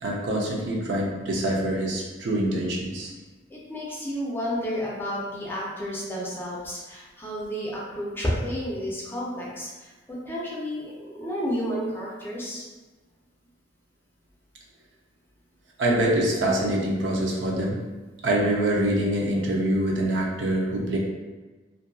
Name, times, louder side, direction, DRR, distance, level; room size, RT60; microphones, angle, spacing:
voice 1, 0.0-3.1 15.8-17.8 18.2-21.0, right 1 dB, 70° right, -2 dB, 0.5 m, -25 dB
voice 2, 3.5-12.6, equal, 10° left, -5 dB, 0.5 m, -31 dB
2.6 x 2.6 x 2.3 m, 1.2 s
head